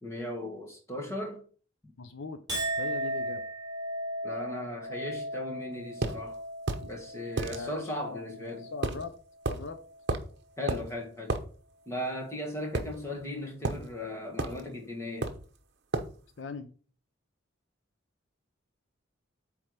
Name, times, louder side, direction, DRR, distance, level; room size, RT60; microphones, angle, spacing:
voice 1, 0.0-1.4 4.2-6.4 6.8-8.7 10.6-11.4 11.9-15.3, left 1 dB, 15° left, 1.9 m, -37 dB
voice 2, 2.0-2.4 2.8-3.4 7.5-9.1 9.5-9.8 16.4-16.7, left 4 dB, 70° left, 0.6 m, -40 dB
Chink clink, 2.5-9.0 9.4-10.0, right 1 dB, 20° right, 2.6 m, -37 dB
sound 1, 6.0-6.2 6.7-6.9 7.4-7.6 8.8-9.0 9.4-9.6 10.1-10.3 10.7-10.8 11.3-11.4 12.7-13.3 13.6-13.8 14.4-14.6 15.2-15.5 15.9-16.1, right 2 dB, 55° right, 0.9 m, -31 dB
8.8 x 3.6 x 4.8 m
head